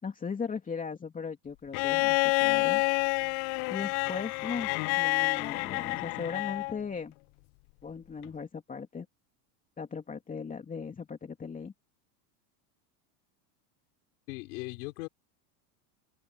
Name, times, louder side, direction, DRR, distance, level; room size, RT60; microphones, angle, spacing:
voice 1, 0.0-2.8 3.7-4.7 5.0-7.1 7.8-9.1 9.8-11.7, left 5 dB, 15° left, 3.0 m, -38 dB
Bowed string instrument, 1.7-6.8 8.2-8.3, left 28 dB, 50° left, 0.5 m, -28 dB
voice 2, 14.3-15.1, left 25 dB, 75° left, 5.2 m, -38 dB
supercardioid pair, 140°, 47 cm